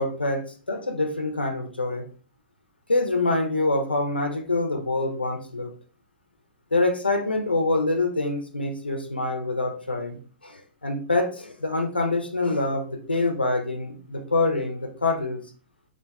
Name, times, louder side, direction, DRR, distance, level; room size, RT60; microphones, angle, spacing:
voice 1, 0.0-2.0 2.9-5.7 6.7-10.2 10.4-15.4, left 2 dB, 85° left, 5 dB, 0.6 m, -25 dB
3.7 x 2.4 x 2.3 m, 0.40 s
figure-of-eight pair, 110°, 5 cm